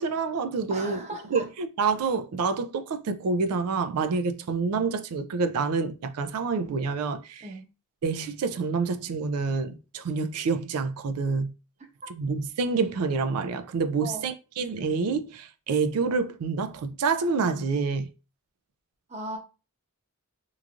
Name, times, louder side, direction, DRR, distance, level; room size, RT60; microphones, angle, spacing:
voice 1, 0.0-1.0 1.3-7.5 8.0-11.5 12.2-18.1, right 4 dB, 85° right, 0.4 m, -27 dB
voice 2, 0.7-1.5 7.4-7.6 14.0-14.2 19.1-19.4, right 1 dB, 30° right, 0.7 m, -37 dB
3.0 x 2.4 x 2.4 m
head